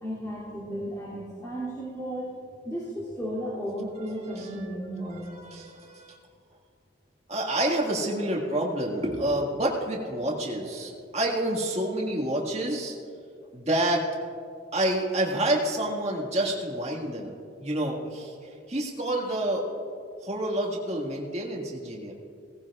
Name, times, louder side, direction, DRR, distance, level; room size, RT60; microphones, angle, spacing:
voice 1, 0.0-2.3 2.6-5.2, equal, 15° left, -10 dB, 2.7 m, -34 dB
voice 2, 4.2-4.5 5.1-6.2 7.3-13.0 13.5-14.1 14.7-17.3 17.6-19.6 20.2-22.1, right 1 dB, 35° right, -2 dB, 1.8 m, -28 dB
18.0 x 16.0 x 2.4 m, 2.4 s
head